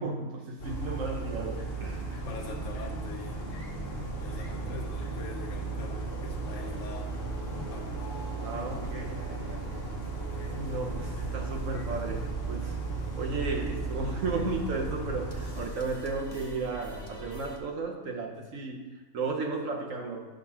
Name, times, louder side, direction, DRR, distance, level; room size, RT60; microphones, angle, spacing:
voice 1, 0.0-2.2 8.4-9.6 10.6-12.8 13.2-20.3, right 3 dB, 75° right, 1 dB, 1.3 m, -34 dB
sound 1, 0.6-15.6, right 3 dB, 50° left, 1.1 m, -35 dB
voice 2, 2.2-7.1 7.5-8.1 10.5-11.2, left 5 dB, 65° left, 0 dB, 1.1 m, -44 dB
sound 2, 5.8-17.6, left 2 dB, 20° left, 0.7 m, -46 dB
9.1 x 3.8 x 5.6 m, 1.2 s
omnidirectional pair, 1.4 m